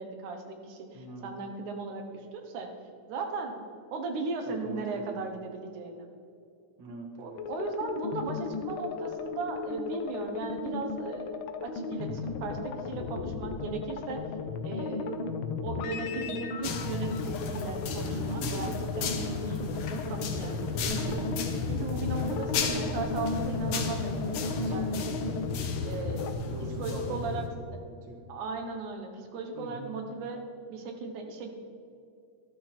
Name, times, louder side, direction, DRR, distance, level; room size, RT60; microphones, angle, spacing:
voice 1, 0.0-2.7 3.1-3.6 3.9-6.1 7.2-14.2 14.6-15.1 15.6-21.2 21.7-25.0 25.8-26.3 26.8-27.5 28.3-30.4 30.7-31.5, right 3 dB, 85° right, 4 dB, 2.6 m, -37 dB
voice 2, 0.9-1.3 4.5-5.2 6.8-7.4 12.0-12.3 18.3-18.7 21.1-21.7 24.5-25.8 26.5-27.4 27.9-28.2 29.5-29.9, right 2 dB, 45° right, 0 dB, 2.2 m, -44 dB
sound 1, 7.3-26.3, left 4 dB, 90° left, 1.1 m, -35 dB
sound 2, 16.6-27.5, left 3 dB, 65° left, 1.8 m, -34 dB
13.0 x 12.0 x 4.3 m, 2.5 s
omnidirectional pair, 3.4 m